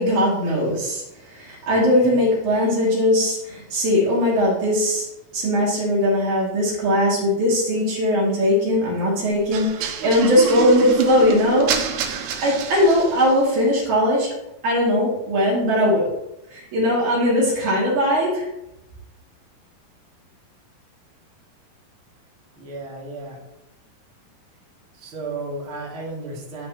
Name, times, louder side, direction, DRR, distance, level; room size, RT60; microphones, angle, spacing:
voice 1, 0.0-5.1 5.3-11.7 12.4-14.3 14.6-16.1 16.5-18.5, left 1 dB, 55° right, -5 dB, 3.6 m, -20 dB
sound 1, 9.5-13.5, right 7 dB, 85° right, 2.8 m, -27 dB
voice 2, 22.6-23.4 24.9-26.7, right 2 dB, 35° right, -6 dB, 2.8 m, -34 dB
12.5 x 5.2 x 2.9 m, 0.89 s
omnidirectional pair, 4.4 m